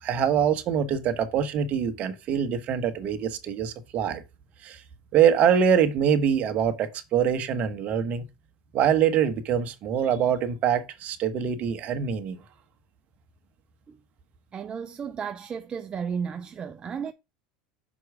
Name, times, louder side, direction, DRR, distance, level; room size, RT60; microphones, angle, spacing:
voice 1, 0.0-4.2 4.6-4.8 5.1-8.3 8.7-12.4, right 8 dB, 45° right, 1.2 m, -24 dB
voice 2, 14.5-17.1, right 6 dB, 30° right, 0.5 m, -33 dB
6.2 x 4.6 x 4.9 m
hypercardioid pair, 100°, 3 cm